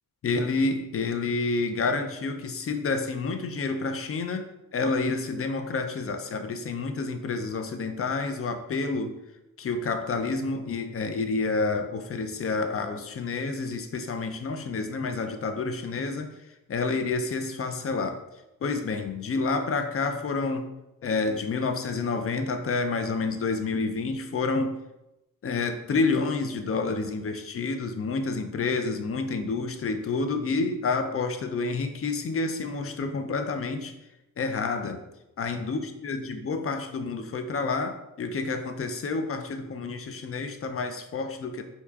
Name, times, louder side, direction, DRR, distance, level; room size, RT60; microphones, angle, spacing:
voice 1, 0.2-9.2 9.6-16.3 16.7-18.2 18.6-20.7 21.0-24.8 25.4-33.9 34.4-35.0 35.4-41.6, left 4 dB, 40° left, 7 dB, 0.5 m, -29 dB
4.3 x 2.8 x 2.3 m, 0.93 s
cardioid pair, 60°, 35 cm